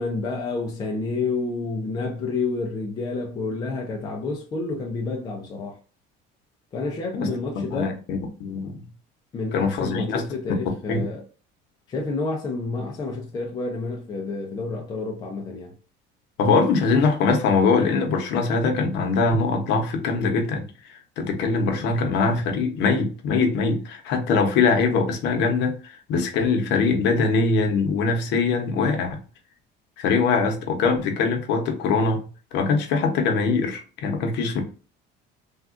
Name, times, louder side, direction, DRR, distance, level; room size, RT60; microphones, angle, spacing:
voice 1, 0.0-5.8 6.7-8.0 9.3-11.2 11.9-15.7, left 3 dB, 20° left, 0.4 m, -29 dB
voice 2, 7.7-8.8 9.5-10.2 10.9-11.1 16.4-29.2 30.0-32.3 32.5-34.6, left 4 dB, 60° left, 0.8 m, -22 dB
3.4 x 2.3 x 2.4 m
cardioid pair, 175°, 20 cm